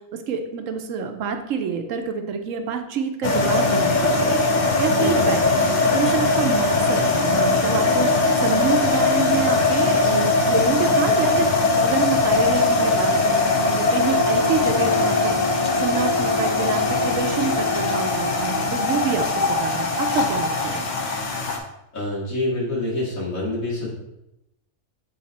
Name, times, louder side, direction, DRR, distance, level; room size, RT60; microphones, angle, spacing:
voice 1, 0.3-4.4 4.8-8.1 8.4-11.5 11.8-15.4 15.8-20.8, right 6 dB, 70° right, 6 dB, 1.0 m, -27 dB
sound 1, 3.2-21.6, left 3 dB, 40° left, 0.7 m, -20 dB
voice 2, 5.0-5.3 21.9-23.9, left 2 dB, 70° left, -6 dB, 2.4 m, -26 dB
Wind instrument woodwind instrument, 13.9-18.6, left 4 dB, 30° right, 1.0 m, -31 dB
7.7 x 3.2 x 4.1 m, 0.89 s
omnidirectional pair, 1.5 m